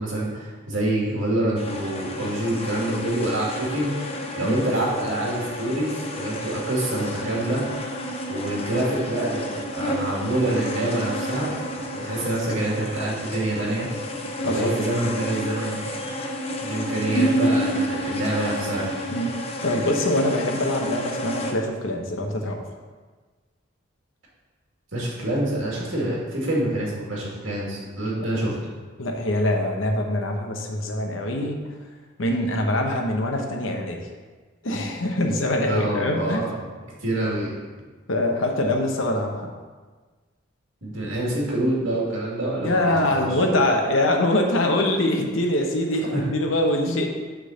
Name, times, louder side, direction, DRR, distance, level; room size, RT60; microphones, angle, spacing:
voice 1, 0.0-3.9 4.3-7.6 8.3-13.9 14.4-15.8 16.6-18.9 24.9-28.6 35.6-36.5 37.0-37.5 40.8-43.3 46.1-46.2, right 1 dB, 70° right, -4 dB, 2.2 m, -26 dB
sound 1, 1.6-21.5, equal, 30° left, 0.6 m, -30 dB
voice 2, 19.6-22.6 28.1-28.3 29.0-31.6 32.2-34.0 34.6-36.5 38.1-39.5 42.6-47.1, left 1 dB, 70° left, 2 dB, 0.9 m, -24 dB
6.6 x 3.8 x 6.4 m, 1.4 s
head